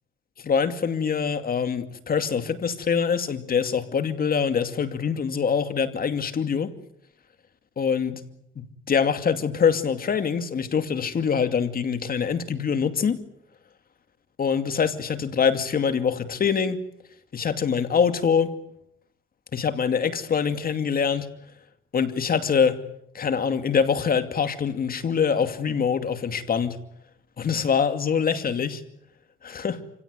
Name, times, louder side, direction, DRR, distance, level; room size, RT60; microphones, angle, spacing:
voice 1, 0.4-6.7 7.8-8.2 8.9-13.2 14.4-16.8 17.3-18.5 19.5-21.3 21.9-22.8 23.1-26.8 27.4-28.8 29.4-29.8, left 6 dB, 50° left, 2.5 m, -24 dB
28.0 x 17.0 x 9.6 m
cardioid pair, 90°, 20 cm